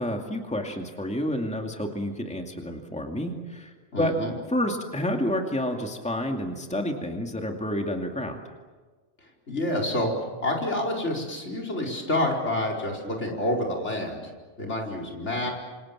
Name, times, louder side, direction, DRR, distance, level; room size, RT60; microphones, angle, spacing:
voice 1, 0.0-4.1 4.5-8.4, left 1 dB, 5° left, 2 dB, 2.4 m, -29 dB
voice 2, 3.9-4.3 9.2-10.1 10.4-14.2 14.6-15.5, left 1 dB, 70° left, 1 dB, 5.1 m, -28 dB
28.0 x 27.0 x 7.4 m, 1.4 s
omnidirectional pair, 1.2 m